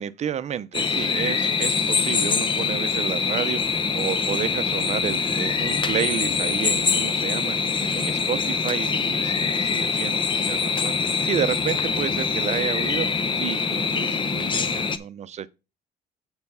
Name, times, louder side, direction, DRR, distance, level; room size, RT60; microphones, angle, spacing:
voice 1, 0.0-11.0 11.2-15.5, right 9 dB, 40° right, 0.6 m, -31 dB
sound 1, 0.7-15.0, left 5 dB, 30° left, 0.8 m, -24 dB
7.8 x 4.3 x 5.5 m
cardioid pair, 110°, 17 cm